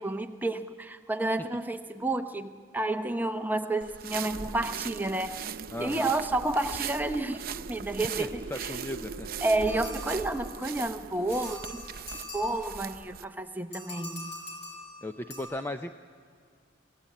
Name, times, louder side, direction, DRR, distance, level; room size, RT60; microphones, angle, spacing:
voice 1, 0.0-5.4 5.8-8.7 9.4-11.8 12.3-14.3, right 2 dB, 10° right, 7 dB, 0.8 m, -30 dB
sound 1, 3.8-13.2, right 8 dB, 50° right, 0.5 m, -40 dB
Wind, 4.1-12.8, right 2 dB, 75° right, 1.0 m, -45 dB
voice 2, 5.7-6.1 8.2-9.3 15.0-15.9, left 1 dB, 10° left, 7 dB, 0.5 m, -36 dB
sound 2, 9.7-10.8 11.3-13.0 13.7-15.4, left 1 dB, 55° left, 5.3 m, -43 dB
25.0 x 16.5 x 8.5 m, 2.2 s
head